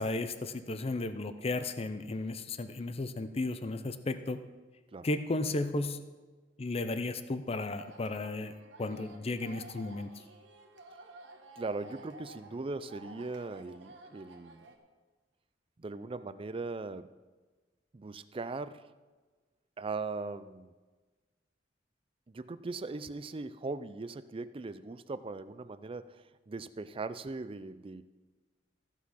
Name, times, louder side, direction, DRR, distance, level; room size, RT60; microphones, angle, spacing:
voice 1, 0.0-4.4 5.0-6.0 6.6-8.5 8.8-10.1, left 2 dB, 35° left, 10 dB, 0.5 m, -34 dB
sound 1, 7.6-14.8, right 2 dB, 80° right, 1.2 m, -53 dB
voice 2, 11.6-14.7 15.8-17.1 17.9-18.8 19.8-20.7 22.3-28.0, right 3 dB, 30° right, 14 dB, 0.4 m, -39 dB
14.5 x 6.0 x 5.7 m, 1.3 s
head